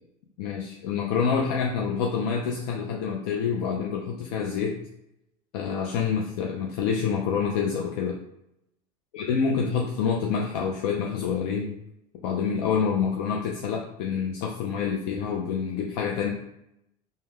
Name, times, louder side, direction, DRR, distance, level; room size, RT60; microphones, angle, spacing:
voice 1, 0.4-4.8 5.5-8.2 9.1-11.7 12.2-16.3, left 6 dB, 75° left, 0 dB, 0.4 m, -27 dB
2.2 x 2.2 x 3.2 m, 0.81 s
supercardioid pair, 95°, 21 cm